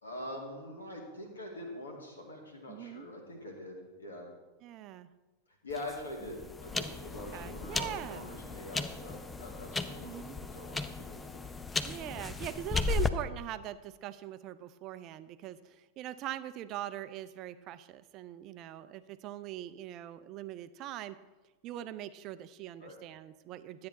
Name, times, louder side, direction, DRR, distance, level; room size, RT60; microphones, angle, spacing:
voice 1, 0.0-4.3 5.6-11.4 22.8-23.0, left 1 dB, 75° left, 0 dB, 2.3 m, -44 dB
voice 2, 2.7-3.1 4.6-5.1 7.3-8.2 10.0-10.4 11.8-21.2 21.6-23.9, right 12 dB, 35° right, 12 dB, 0.5 m, -42 dB
sound 1, 5.7-13.1, left 4 dB, 15° left, 0.5 m, -36 dB
12.5 x 8.6 x 4.0 m, 1.2 s
figure-of-eight pair, 90°, 0 cm